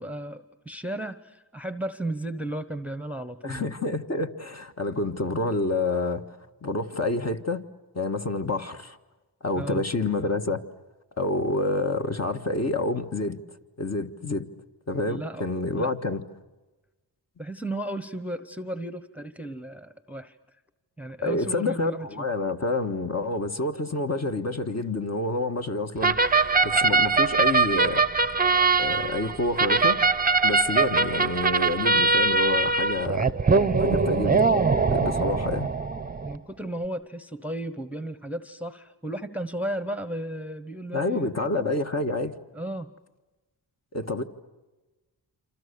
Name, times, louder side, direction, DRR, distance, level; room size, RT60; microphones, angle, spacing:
voice 1, 0.0-3.7 9.6-9.8 15.1-15.5 15.8-15.9 17.4-20.4 21.0-22.1 35.2-35.3 36.2-41.3 42.5-42.9, right 1 dB, 5° right, 1.1 m, -34 dB
voice 2, 3.4-7.6 7.9-9.0 9.4-10.6 11.1-13.4 13.8-14.5 14.9-16.2 21.2-28.0 28.8-30.0 30.4-33.3 33.8-34.5 34.9-35.7 40.9-42.3 43.9-44.2, left 2 dB, 35° left, 1.7 m, -28 dB
sound 1, 26.0-36.4, right 4 dB, 20° right, 0.8 m, -22 dB
28.0 x 27.0 x 6.9 m
cardioid pair, 75°, 42 cm